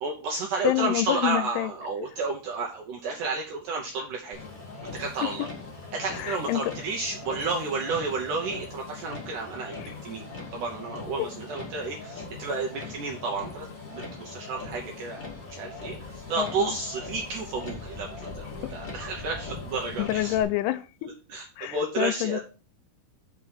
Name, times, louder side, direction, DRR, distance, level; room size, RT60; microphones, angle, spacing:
voice 1, 0.0-4.4 4.9-5.5 5.9-10.2 10.5-13.7 13.9-15.2 15.5-20.4 21.3-22.4, right 4 dB, 70° right, 0 dB, 2.1 m, -31 dB
voice 2, 0.6-1.7 6.1-6.7 9.8-9.9 11.2-11.3 16.4-16.8 20.0-21.1 21.6-22.4, left 14 dB, 90° left, 13 dB, 2.6 m, -27 dB
Motor vehicle (road), 4.3-20.4, left 3 dB, 25° left, 1.6 m, -40 dB
6.1 x 4.8 x 6.3 m, 0.35 s
omnidirectional pair, 4.5 m